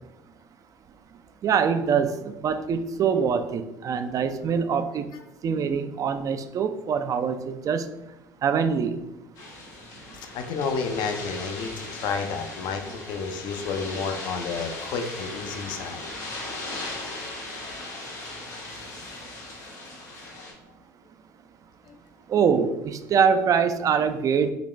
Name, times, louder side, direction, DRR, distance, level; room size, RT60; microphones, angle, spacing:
voice 1, 1.4-5.1 5.4-7.9 8.4-9.0 22.3-24.5, right 6 dB, 40° right, 10 dB, 0.4 m, -24 dB
sound 1, 9.3-20.5, left 2 dB, 80° left, 1.5 m, -38 dB
voice 2, 10.3-16.1 21.9-22.0, left 5 dB, 60° left, 5 dB, 0.6 m, -31 dB
4.0 x 2.9 x 3.2 m, 0.94 s
hypercardioid pair, 70°, 9 cm